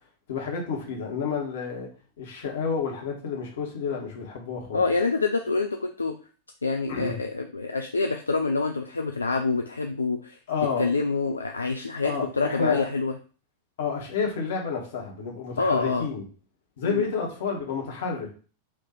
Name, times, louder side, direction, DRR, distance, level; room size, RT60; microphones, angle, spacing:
voice 1, 0.3-1.9 2.2-4.8 6.9-7.2 10.5-10.9 12.0-12.9 13.8-16.2 16.8-18.4, left 5 dB, 55° left, 0 dB, 1.5 m, -30 dB
voice 2, 4.7-6.1 6.6-10.4 10.8-13.1 15.6-16.1 16.8-17.0, left 3 dB, 80° left, 4 dB, 0.4 m, -26 dB
4.4 x 3.0 x 3.9 m, 0.38 s
figure-of-eight pair, 90°, 0 cm